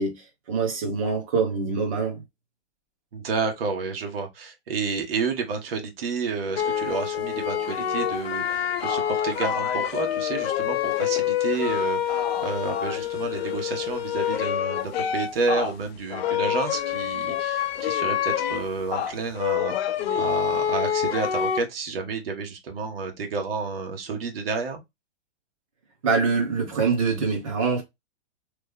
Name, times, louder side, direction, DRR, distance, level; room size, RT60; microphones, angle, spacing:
voice 1, 0.0-2.2 26.0-27.8, right 4 dB, 30° right, 1.0 m, -25 dB
voice 2, 3.1-24.8, right 4 dB, 55° right, 1.1 m, -30 dB
sound 1, 6.6-15.7 16.1-21.6, left 9 dB, 65° left, 0.5 m, -26 dB
3.2 x 2.1 x 3.5 m
hypercardioid pair, 175°, 34 cm